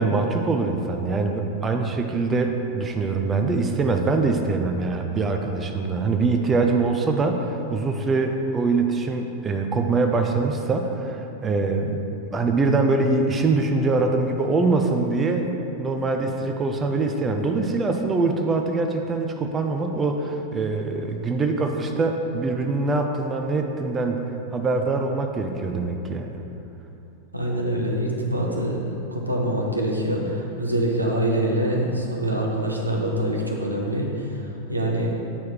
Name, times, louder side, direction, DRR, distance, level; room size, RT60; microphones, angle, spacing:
voice 1, 0.0-12.0 12.3-15.5 15.8-24.2 24.5-26.4, right 3 dB, 20° right, 4 dB, 0.5 m, -23 dB
voice 2, 27.3-35.1, right 1 dB, 85° right, -1 dB, 0.9 m, -25 dB
8.6 x 4.7 x 4.5 m, 2.9 s
figure-of-eight pair, 90°, 0 cm